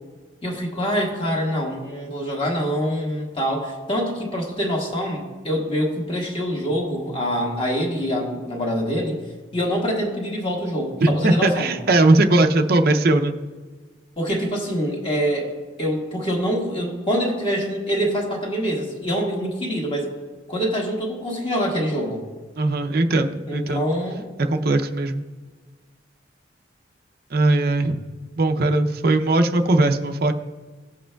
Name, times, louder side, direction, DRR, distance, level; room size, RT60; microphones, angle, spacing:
voice 1, 0.4-9.2 9.5-11.7 14.2-15.5 15.8-20.1 20.5-22.2 23.5-24.3, equal, 30° left, -1 dB, 1.6 m, -25 dB
voice 2, 11.0-13.3 22.6-23.8 24.4-25.2 27.3-28.0 28.4-30.3, right 2 dB, 55° right, 5 dB, 0.6 m, -19 dB
17.0 x 7.4 x 2.3 m, 1.4 s
head